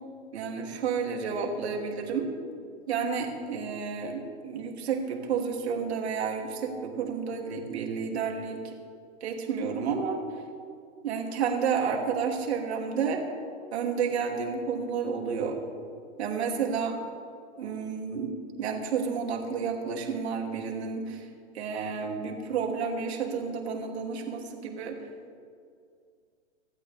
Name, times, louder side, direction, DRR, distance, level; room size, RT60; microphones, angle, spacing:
voice 1, 0.3-2.3 2.9-8.8 9.2-10.2 11.0-13.2 13.7-15.6 16.2-17.0 17.6-18.3 18.6-21.3 21.5-25.0, right 6 dB, 70° right, 1 dB, 3.0 m, -31 dB
26.0 x 13.0 x 3.6 m, 2.2 s
hypercardioid pair, 150°, 34 cm